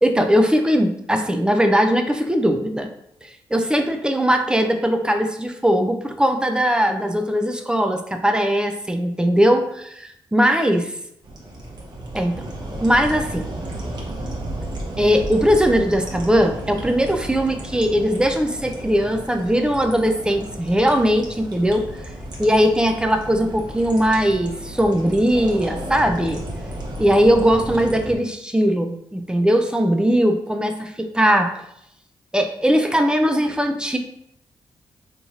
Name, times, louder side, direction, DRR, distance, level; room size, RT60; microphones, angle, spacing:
voice 1, 0.0-2.9 3.2-10.9 12.1-12.4 12.8-13.5 15.0-21.9 22.4-26.4 27.0-31.5 32.3-34.0, equal, 10° right, 5 dB, 0.4 m, -19 dB
sound 1, 11.2-28.1, right 1 dB, 50° right, 1.0 m, -33 dB
3.6 x 3.0 x 2.7 m, 0.75 s
cardioid pair, 90°, 9 cm